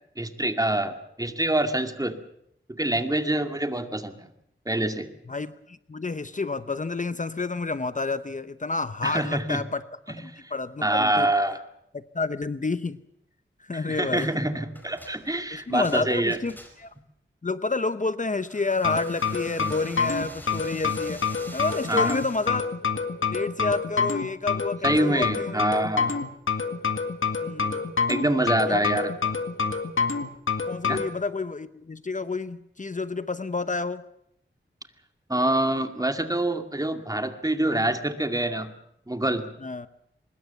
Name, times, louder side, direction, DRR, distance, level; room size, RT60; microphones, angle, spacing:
voice 1, 0.2-2.2 2.7-4.3 4.7-5.1 9.0-9.6 10.1-10.5 10.8-11.6 13.7-16.4 21.9-22.2 24.8-26.2 28.1-29.1 30.9-31.0 35.3-38.7 39.1-39.5, right 1 dB, 20° right, 6 dB, 2.2 m, -26 dB
voice 2, 5.3-9.8 10.2-11.3 11.9-13.0 13.6-14.3 15.5-16.9 17.4-21.2 21.5-22.7 23.3-25.6 27.4-27.8 28.7-28.9 30.6-34.0 39.6-39.9, left 3 dB, 40° left, 13 dB, 0.8 m, -29 dB
sound 1, 14.2-14.4 14.7-17.0 18.4-22.6, equal, 10° left, 4.8 m, -46 dB
sound 2, 18.8-31.1, left 5 dB, 80° left, 1.9 m, -27 dB
24.0 x 21.0 x 7.0 m, 0.74 s
wide cardioid pair, 90°, 20 cm